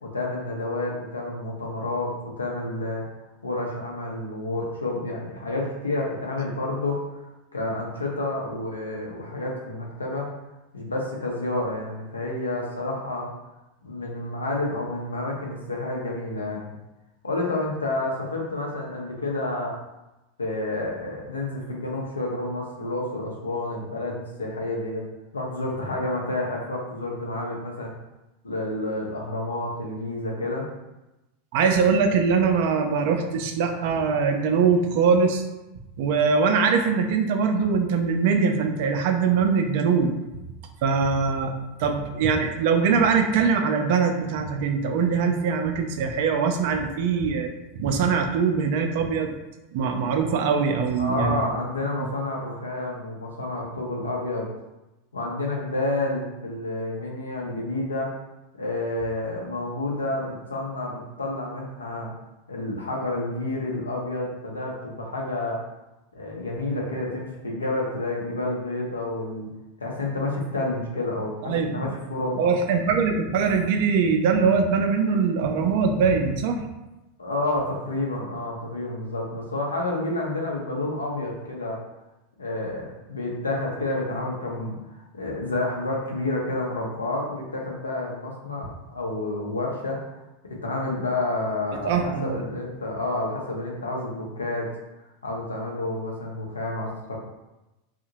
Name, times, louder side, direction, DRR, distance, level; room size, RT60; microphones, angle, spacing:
voice 1, 0.0-3.1 3.4-7.0 7.5-10.3 10.7-13.3 13.8-16.7 17.2-19.8 20.4-25.0 25.3-27.9 28.4-30.7 51.0-54.5 55.1-58.1 58.6-62.1 62.5-65.6 66.1-69.5 69.8-72.5 77.2-81.8 82.4-90.2 90.6-94.7 95.2-97.2, left 2 dB, 85° left, -1 dB, 0.5 m, -29 dB
voice 2, 31.5-35.4 36.0-40.1 40.8-41.5 41.8-47.5 47.8-49.3 49.7-51.4 71.4-72.0 72.4-76.6 91.7-92.5, right 5 dB, 55° right, 5 dB, 0.3 m, -22 dB
2.6 x 2.0 x 2.8 m, 1.0 s
figure-of-eight pair, 85°, 0 cm